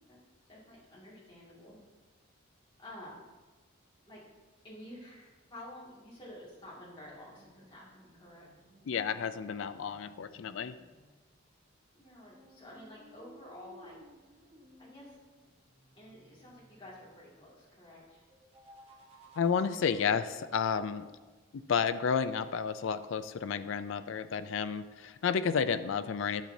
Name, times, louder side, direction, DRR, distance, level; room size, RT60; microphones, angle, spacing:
voice 1, 0.5-1.8 2.8-3.2 4.1-4.2 4.6-8.5 11.9-14.0 14.8-15.2 16.0-18.2, left 1 dB, 25° left, -7 dB, 2.1 m, -50 dB
sound 1, 6.9-11.2 12.3-17.1 18.3-19.9, equal, 25° right, 1.0 m, -59 dB
voice 2, 8.9-10.8 19.4-21.1 21.5-26.4, left 6 dB, 65° left, 12 dB, 0.4 m, -31 dB
10.5 x 6.4 x 2.7 m, 1.3 s
head